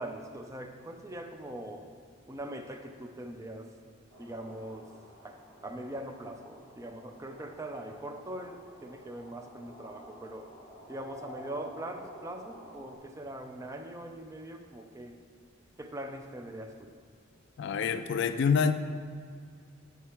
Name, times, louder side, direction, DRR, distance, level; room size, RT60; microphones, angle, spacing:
voice 1, 0.0-1.9 2.3-3.7 4.2-4.9 5.2-10.5 10.9-15.2 15.8-16.9, right 1 dB, 15° right, 5 dB, 0.4 m, -42 dB
sound 1, 4.1-13.0, equal, 80° right, 1.4 m, -51 dB
voice 2, 17.6-18.7, left 6 dB, 60° left, 9 dB, 0.3 m, -26 dB
8.0 x 4.8 x 4.4 m, 2.1 s
head